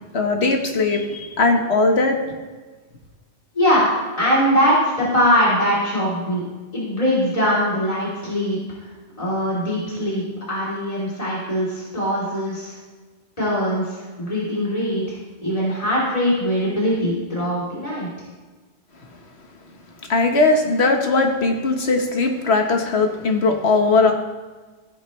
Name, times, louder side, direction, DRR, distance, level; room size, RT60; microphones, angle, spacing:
voice 1, 0.1-2.2 20.1-24.1, left 3 dB, 65° left, 3 dB, 1.6 m, -19 dB
voice 2, 3.6-3.9 4.2-6.4 6.7-8.6 9.2-12.8 13.4-18.1, equal, 30° left, -8 dB, 3.5 m, -21 dB
15.0 x 9.6 x 3.3 m, 1.3 s
omnidirectional pair, 1.2 m